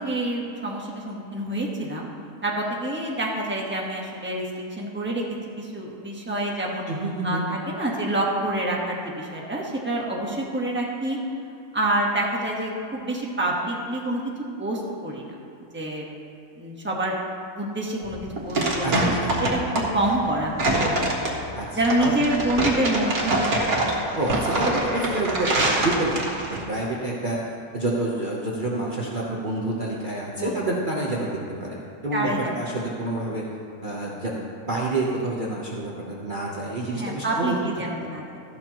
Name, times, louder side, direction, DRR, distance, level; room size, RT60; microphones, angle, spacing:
voice 1, 0.0-2.1 2.4-5.2 5.6-6.8 7.2-11.2 11.7-14.2 14.6-15.3 15.7-16.0 16.6-17.1 17.6-18.2 18.4-19.1 19.4-21.4 21.7-23.6 30.4-30.7 32.1-32.6 36.9-38.4, right 1 dB, 10° right, -3 dB, 1.3 m, -27 dB
voice 2, 6.9-7.4 18.8-19.4 21.5-22.2 24.1-26.2 26.5-27.4 27.7-31.8 32.0-33.4 33.8-37.6, right 2 dB, 40° right, -4 dB, 1.1 m, -28 dB
sound 1, 18.0-26.6, right 1 dB, 80° right, 2.0 m, -25 dB
14.0 x 11.5 x 3.0 m, 2.6 s
omnidirectional pair, 1.5 m